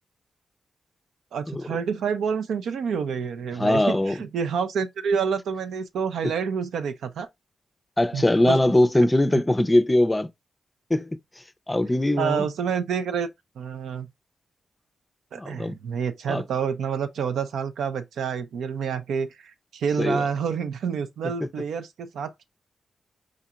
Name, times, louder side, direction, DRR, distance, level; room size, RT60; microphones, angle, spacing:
voice 1, 1.3-7.3 8.1-8.6 9.3-9.4 12.2-13.3 13.6-14.1 15.3-22.4, right 6 dB, 85° right, 0.4 m, -28 dB
voice 2, 3.6-4.2 8.0-10.3 10.9-11.2 11.7-12.5 15.4-15.7 16.3-16.4 20.0-20.2, left 1 dB, 20° left, 0.4 m, -21 dB
5.0 x 2.8 x 2.2 m
cardioid pair, 55°, 0 cm